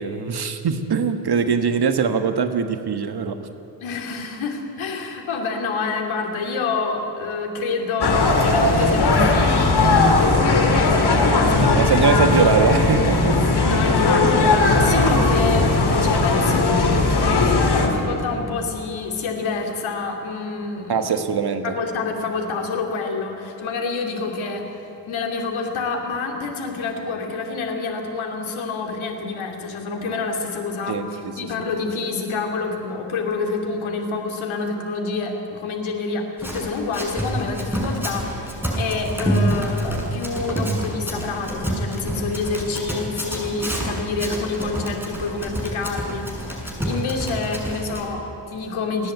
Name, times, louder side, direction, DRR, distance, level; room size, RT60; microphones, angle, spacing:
voice 1, 0.0-3.4 11.6-13.4 13.7-13.8 20.9-21.8 30.9-31.0, right 6 dB, 50° right, 8 dB, 1.6 m, -22 dB
voice 2, 3.8-12.6 13.6-21.1 21.6-24.7 25.1-49.1, left 4 dB, 75° left, 2 dB, 2.9 m, -27 dB
sound 1, 8.0-17.9, left 3 dB, 50° left, 3.3 m, -18 dB
Run, 36.4-48.0, right 1 dB, 5° right, 6.9 m, -27 dB
28.5 x 10.5 x 9.4 m, 2.8 s
hypercardioid pair, 40°, 48 cm